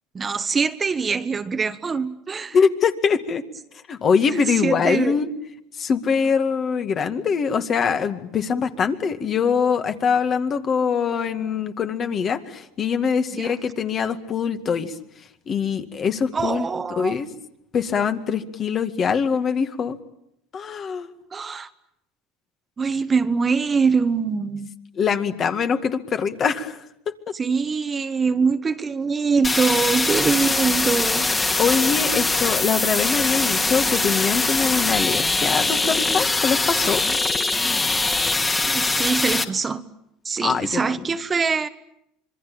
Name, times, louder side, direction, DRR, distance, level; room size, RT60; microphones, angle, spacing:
voice 1, 0.1-2.6 4.3-5.2 13.3-13.5 16.3-17.2 21.3-21.7 22.8-24.7 27.3-31.4 38.6-39.8 40.2-41.7, right 5 dB, 25° right, 1.4 m, -23 dB
voice 2, 2.5-3.4 3.9-5.3 5.8-14.9 15.5-17.3 17.7-20.0 20.5-21.1 25.0-26.8 27.1-27.2 31.6-37.0 40.4-40.9, left 6 dB, 40° left, 2.1 m, -23 dB
sound 1, 29.4-39.4, left 3 dB, 20° left, 2.2 m, -22 dB
26.0 x 22.5 x 8.7 m
supercardioid pair, 90°, 0 cm